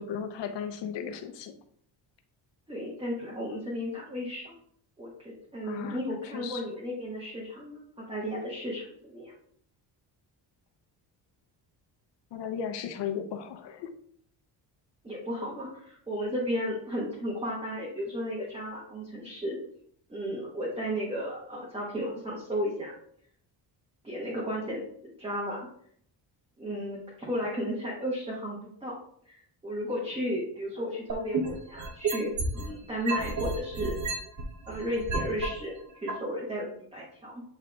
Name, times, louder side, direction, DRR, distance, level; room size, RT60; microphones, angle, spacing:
voice 1, 0.0-1.5 5.6-6.6 12.3-13.9, left 7 dB, 80° left, 8 dB, 0.8 m, -36 dB
voice 2, 2.7-4.5 5.0-9.3 15.0-19.6 20.1-22.9 24.0-25.7 26.6-28.9 29.3-34.0 34.7-37.4, equal, 15° right, -5 dB, 1.4 m, -34 dB
sound 1, 31.1-32.7 33.1-35.5 36.1-36.2, right 4 dB, 45° right, 1.1 m, -31 dB
8.0 x 3.5 x 3.6 m, 0.63 s
cardioid pair, 165°, 42 cm